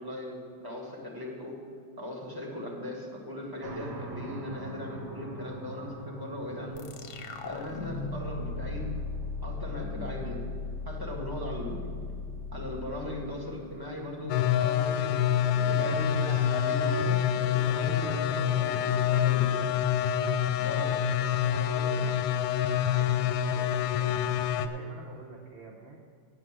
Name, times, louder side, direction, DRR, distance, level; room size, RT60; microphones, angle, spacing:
voice 1, 0.0-1.6 2.0-6.9 7.4-8.9 9.4-10.4 10.8-11.8 12.5-19.6 20.6-21.1, left 1 dB, 10° right, -2 dB, 1.7 m, -38 dB
sound 1, 3.6-23.3, right 3 dB, 85° right, 2.1 m, -48 dB
sound 2, 6.7-14.0, left 4 dB, 60° left, 0.8 m, -38 dB
sound 3, 14.3-24.7, left 9 dB, 80° left, 1.3 m, -26 dB
voice 2, 21.3-24.2 24.4-26.0, right 3 dB, 50° right, -1 dB, 0.7 m, -47 dB
9.5 x 7.7 x 7.5 m, 2.2 s
omnidirectional pair, 2.1 m